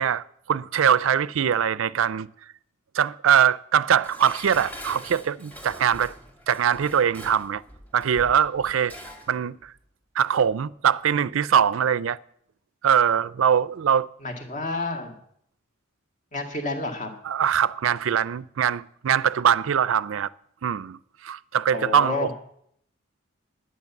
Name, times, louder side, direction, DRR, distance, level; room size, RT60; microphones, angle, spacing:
voice 1, 0.0-2.3 2.9-6.1 6.5-7.6 7.9-8.9 9.3-9.7 10.2-12.2 12.8-14.1 17.2-20.3 20.6-22.3, right 8 dB, 75° right, 0.4 m, -22 dB
Dishes pots and pans, 4.0-9.3 9.7-9.8, equal, 10° left, 2.1 m, -43 dB
voice 2, 14.2-15.2 16.3-17.1 21.7-22.3, left 3 dB, 40° left, 1.9 m, -30 dB
11.0 x 9.6 x 7.1 m
head